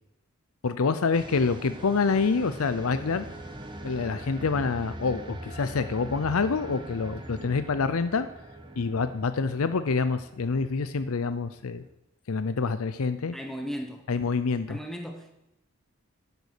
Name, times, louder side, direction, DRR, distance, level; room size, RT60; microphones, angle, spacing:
voice 1, 0.6-3.2 3.8-8.3 8.8-11.8 12.3-13.4 14.1-14.8, left 4 dB, 80° left, 11 dB, 0.6 m, -27 dB
sound 1, 1.1-11.9, right 1 dB, 20° right, 1.1 m, -42 dB
voice 2, 13.3-14.1 14.7-15.3, equal, ahead, 4 dB, 1.2 m, -36 dB
10.5 x 8.2 x 6.6 m, 0.85 s
head